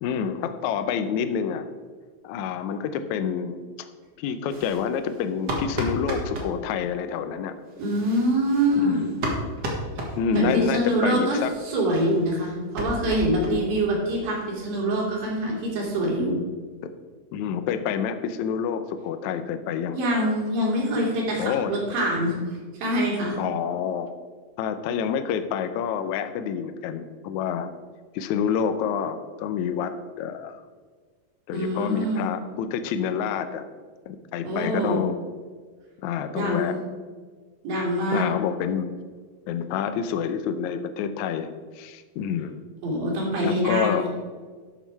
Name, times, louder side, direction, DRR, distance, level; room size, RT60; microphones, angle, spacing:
voice 1, 0.0-1.7 2.2-3.9 4.2-7.6 8.8-9.1 10.2-11.5 16.8-16.9 17.3-20.0 21.4-21.7 23.4-24.1 24.6-27.7 28.1-30.6 31.5-33.7 34.1-35.1 36.0-36.8 38.1-38.9 39.5-42.6 43.4-44.0, left 7 dB, 80° left, 9 dB, 1.7 m, -28 dB
sound 1, 4.5-6.5 7.7-10.8 11.1-11.2 11.4-11.5 11.8-13.9 14.1-14.2 14.5-14.6 15.0-15.1 15.3-16.2, right 1 dB, 45° right, 1.5 m, -34 dB
voice 2, 7.8-9.2 10.3-11.4 11.6-16.4 19.9-22.4 22.7-23.4 31.5-32.3 34.4-35.0 36.3-36.8 37.6-38.3 42.8-44.1, right 1 dB, 90° right, -3 dB, 4.4 m, -25 dB
12.0 x 6.3 x 4.6 m, 1.5 s
omnidirectional pair, 4.0 m